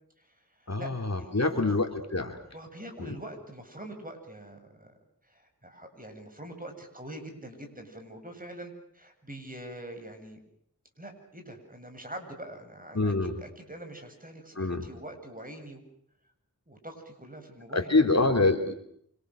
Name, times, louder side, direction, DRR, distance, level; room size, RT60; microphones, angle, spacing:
voice 1, 0.2-0.9 1.2-1.7 2.5-4.9 5.2-10.4 11.0-15.8 16.7-18.3, right 1 dB, 25° right, 4 dB, 7.9 m, -44 dB
voice 2, 0.7-2.4 3.0-3.1 12.9-13.4 14.6-14.8 17.7-18.7, left 3 dB, 50° left, 4 dB, 3.4 m, -26 dB
28.5 x 26.5 x 6.6 m, 0.67 s
wide cardioid pair, 45°, 34 cm